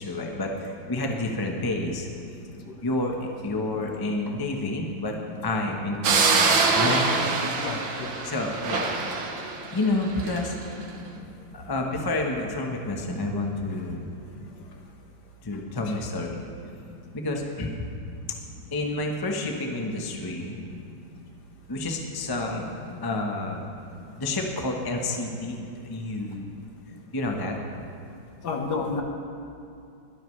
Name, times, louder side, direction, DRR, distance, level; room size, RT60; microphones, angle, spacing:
voice 1, 0.0-2.1 2.8-5.1 5.4-7.1 8.2-8.9 9.7-10.5 11.5-14.1 15.4-16.4 17.1-17.7 18.7-20.6 21.7-22.6 23.0-23.6 24.2-26.5 27.1-27.6, left 2 dB, 15° left, 1 dB, 0.8 m, -29 dB
sound 1, 6.0-10.5, right 4 dB, 80° right, 1.9 m, -24 dB
voice 2, 7.6-8.1 28.4-29.0, left 4 dB, 60° left, 2 dB, 1.7 m, -30 dB
21.5 x 12.5 x 3.3 m, 2.5 s
omnidirectional pair, 2.1 m